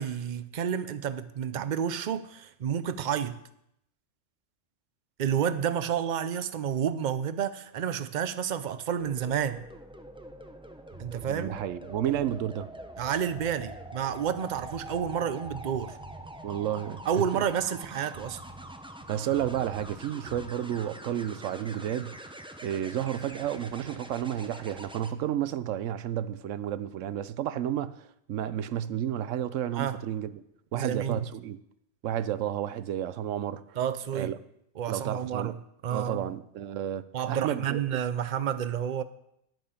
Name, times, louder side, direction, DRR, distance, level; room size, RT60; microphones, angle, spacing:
voice 1, 0.0-3.4 5.2-9.6 11.0-11.6 13.0-16.0 17.1-18.4 29.7-30.0 30.7-31.2 33.8-34.3 34.8-35.6 35.8-36.3 37.1-39.0, right 8 dB, 50° right, 0.6 m, -30 dB
sound 1, 9.0-25.1 27.0-27.3, right 1 dB, 5° right, 0.4 m, -45 dB
sound 2, 10.9-11.5 12.0-15.2 15.5-16.3 16.8-20.0 20.3-20.5, right 2 dB, 25° right, 1.1 m, -49 dB
voice 2, 11.3-12.7 16.4-17.4 19.1-22.2 22.6-30.3 30.7-31.6 32.0-33.8 34.1-34.4 34.9-35.5 35.9-37.8, right 11 dB, 80° right, 1.0 m, -31 dB
10.5 x 8.6 x 5.8 m
omnidirectional pair, 1.3 m